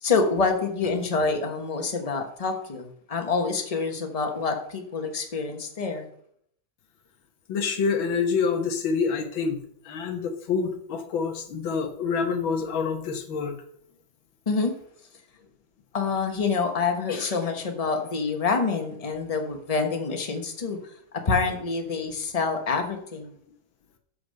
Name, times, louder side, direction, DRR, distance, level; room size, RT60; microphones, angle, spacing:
voice 1, 0.0-6.1 14.5-14.8 15.9-20.8 21.3-23.3, left 4 dB, 25° left, 4 dB, 0.8 m, -27 dB
voice 2, 7.5-9.6 9.9-13.6, left 5 dB, 85° left, 5 dB, 1.9 m, -27 dB
6.5 x 6.0 x 6.4 m, 0.66 s
omnidirectional pair, 2.1 m